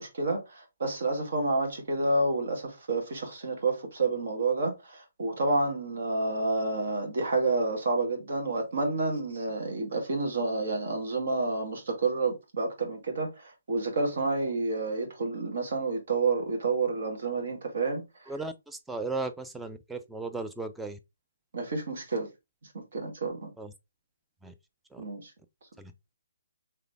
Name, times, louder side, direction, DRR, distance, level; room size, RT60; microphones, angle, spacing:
voice 1, 0.0-18.0 21.5-22.3 22.7-23.5 25.0-25.3, right 3 dB, 65° right, 1.8 m, -29 dB
voice 2, 18.3-21.0 23.6-23.7 24.4-24.5 24.9-25.0 25.8-25.9, right 3 dB, 5° right, 0.4 m, -36 dB
3.8 x 3.2 x 3.3 m
figure-of-eight pair, 140°, 0 cm